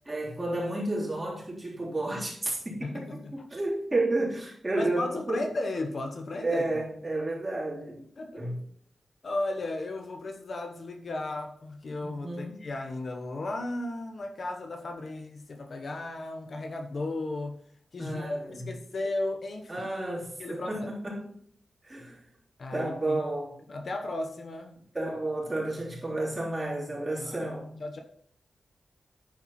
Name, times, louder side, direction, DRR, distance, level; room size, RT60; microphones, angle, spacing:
voice 1, 0.1-5.5 6.4-8.0 8.3-8.6 12.0-12.7 18.0-18.6 19.7-21.3 21.8-22.2 22.7-23.6 24.9-27.8, right 2 dB, 20° right, 3.4 m, -31 dB
voice 2, 2.8-3.3 4.7-6.8 8.2-8.4 9.2-17.6 17.9-19.9 20.4-20.7 22.6-23.2 23.7-24.8 27.2-27.5 27.8-28.0, left 2 dB, 55° left, 1.0 m, -35 dB
10.5 x 4.5 x 5.8 m
wide cardioid pair, 100°, 0 cm